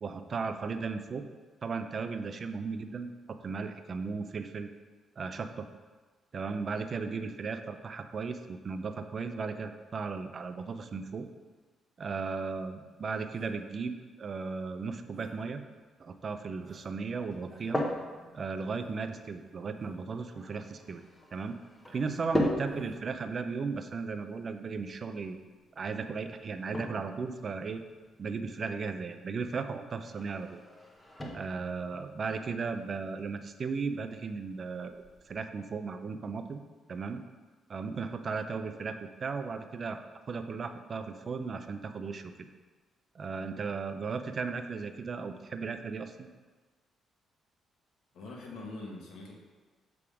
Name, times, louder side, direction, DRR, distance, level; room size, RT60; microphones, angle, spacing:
voice 1, 0.0-1.2 1.6-4.7 5.2-5.7 6.3-11.3 12.0-15.6 16.0-17.9 18.3-21.0 21.3-21.6 21.9-25.4 25.8-27.8 28.2-30.6 31.3-36.6 36.9-37.2 37.7-42.5 43.1-46.3, right 4 dB, 45° right, 9 dB, 0.4 m, -36 dB
sound 1, 13.3-13.8 15.1-15.5 16.1-16.2 16.6-17.1 17.4-17.9 18.8-19.1 19.7-20.1 20.6-20.7 21.8-22.4 22.7-23.0, right 2 dB, 20° right, 0.9 m, -56 dB
sound 2, 17.3-35.4, equal, 15° left, 0.9 m, -40 dB
voice 2, 48.1-49.4, left 2 dB, 80° left, -1 dB, 1.2 m, -43 dB
6.8 x 3.6 x 4.9 m, 1.4 s
cardioid pair, 90°, 0 cm